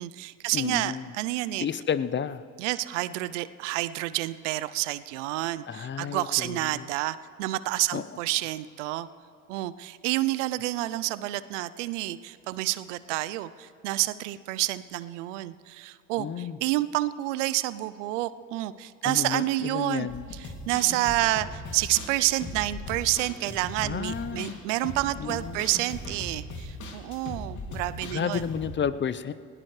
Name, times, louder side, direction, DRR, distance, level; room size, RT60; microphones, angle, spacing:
voice 1, 0.0-1.7 2.6-9.1 9.5-20.1 20.7-28.5, right 17 dB, 80° right, 16 dB, 0.6 m, -29 dB
voice 2, 0.5-1.1 1.6-2.4 5.7-6.9 7.9-8.0 16.2-16.6 19.0-20.2 23.8-24.6 25.2-25.6 28.1-29.3, left 7 dB, 30° left, 15 dB, 0.6 m, -31 dB
sound 1, 20.1-28.8, left 2 dB, 55° left, 2.6 m, -39 dB
19.5 x 17.0 x 3.2 m, 2.5 s
hypercardioid pair, 60°, 36 cm